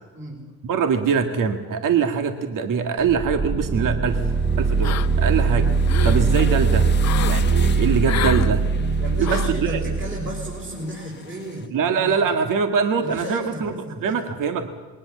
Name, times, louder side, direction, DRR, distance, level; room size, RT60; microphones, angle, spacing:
voice 1, 0.6-4.2 4.6-5.7 6.0-6.9 7.3-8.6 9.2-9.8 11.7-13.7 14.0-14.7, right 6 dB, 60° right, 6 dB, 2.0 m, -23 dB
sound 1, 3.0-10.8, right 4 dB, 15° right, 0.6 m, -21 dB
sound 2, 4.1-11.7, left 6 dB, 30° left, 1.2 m, -38 dB
sound 3, 4.8-5.3 5.7-6.2 7.0-7.4 8.0-8.5 9.2-9.6, left 11 dB, 45° left, 0.8 m, -29 dB
voice 2, 9.0-12.1 13.0-14.3, right 1 dB, 30° right, -4 dB, 5.8 m, -33 dB
22.0 x 18.5 x 7.5 m, 1.4 s
cardioid pair, 100°, 36 cm